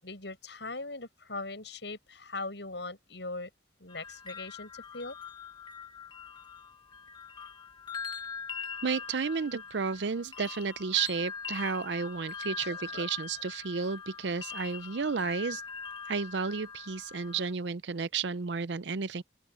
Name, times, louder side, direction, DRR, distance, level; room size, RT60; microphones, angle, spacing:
voice 1, 0.0-3.5 3.8-5.2 12.6-13.1, left 3 dB, 70° left, 7.1 m, -40 dB
sound 1, 3.9-17.5, left 6 dB, 25° left, 1.2 m, -42 dB
voice 2, 8.8-15.6 16.1-19.2, right 5 dB, 75° right, 0.6 m, -32 dB
open air
head